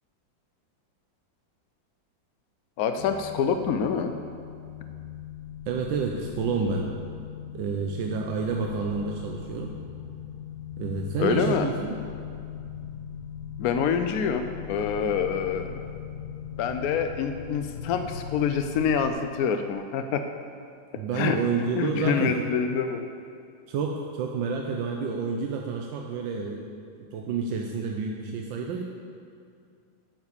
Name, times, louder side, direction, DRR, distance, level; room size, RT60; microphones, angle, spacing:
voice 1, 2.8-4.1 11.2-11.7 13.6-15.8 16.6-20.2 21.2-21.4 21.7-23.0, left 7 dB, 85° left, 7 dB, 0.8 m, -26 dB
sound 1, 3.0-19.1, left 8 dB, 55° left, 1.5 m, -40 dB
voice 2, 5.7-6.9 7.5-9.7 10.8-12.0 21.0-22.3 23.7-26.7 27.1-28.8, right 5 dB, 75° right, 1 dB, 1.4 m, -29 dB
9.4 x 7.3 x 6.8 m, 2.4 s
omnidirectional pair, 2.1 m